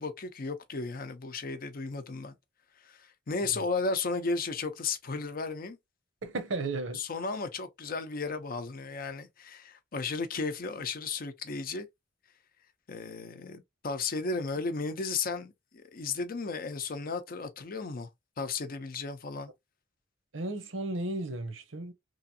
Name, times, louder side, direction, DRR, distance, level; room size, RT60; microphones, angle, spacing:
voice 1, 0.0-2.3 2.8-5.8 6.9-11.9 12.9-18.1 18.4-19.5, left 4 dB, 50° left, 0.6 m, -34 dB
voice 2, 6.2-7.0 20.3-21.9, right 2 dB, 85° right, 0.8 m, -34 dB
3.1 x 2.5 x 2.7 m
head